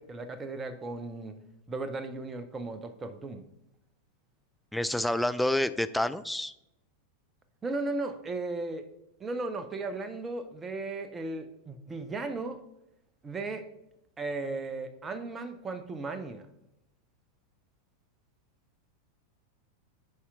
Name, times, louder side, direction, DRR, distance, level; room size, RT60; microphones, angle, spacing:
voice 1, 0.0-1.4 1.7-3.4 7.6-8.8 9.2-12.6 13.2-13.7 14.2-16.5, right 3 dB, 20° right, 9 dB, 0.7 m, -36 dB
voice 2, 4.7-6.5, left 1 dB, 5° left, 11 dB, 0.3 m, -28 dB
11.0 x 4.3 x 3.6 m, 0.87 s
figure-of-eight pair, 90°, 0 cm